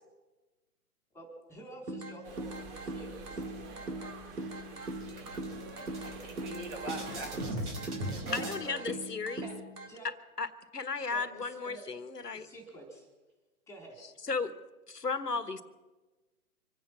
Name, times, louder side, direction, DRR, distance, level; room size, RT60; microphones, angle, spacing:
voice 1, 1.1-3.5 9.4-9.6 9.9-10.1 11.1-11.9 12.3-13.1 13.7-14.1, right 1 dB, 5° left, 2 dB, 3.6 m, -49 dB
sound 1, 1.9-9.9, right 1 dB, 90° right, 2.6 m, -41 dB
sound 2, 2.2-7.5, right 5 dB, 35° right, 2.5 m, -48 dB
sound 3, 3.3-4.0 4.4-4.5 4.8-8.6, right 1 dB, 70° right, 4.7 m, -41 dB
voice 2, 6.0-7.7 8.1-9.0, right 2 dB, 55° right, 2 dB, 5.8 m, -43 dB
voice 3, 8.3-9.5 10.4-12.5 14.3-14.5 14.9-15.6, left 4 dB, 90° left, 13 dB, 1.3 m, -34 dB
25.5 x 9.2 x 6.0 m, 1.2 s
figure-of-eight pair, 125°, 46 cm